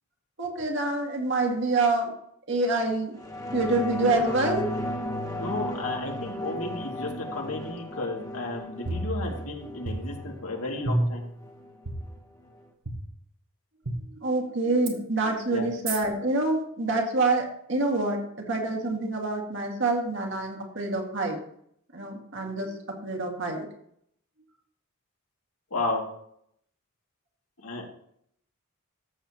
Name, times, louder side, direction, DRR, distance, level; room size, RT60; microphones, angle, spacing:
voice 1, 0.4-2.1 2.5-3.2 3.5-4.7 14.2-21.4 21.9-23.7, right 2 dB, 55° right, 0 dB, 2.0 m, -27 dB
sound 1, 3.2-12.2 12.5-12.6, equal, 15° left, 1.1 m, -35 dB
voice 2, 4.0-4.3 5.4-11.2 15.5-15.7 25.7-26.0 27.6-27.9, left 2 dB, 85° left, 0 dB, 2.3 m, -33 dB
sound 2, 8.9-9.6 9.9-10.5 10.9-11.4 11.9-12.0 12.9-13.0 13.9-14.0 14.9-15.0 15.9-16.0, right 1 dB, 80° right, 1.6 m, -30 dB
14.0 x 7.0 x 2.9 m, 0.69 s
head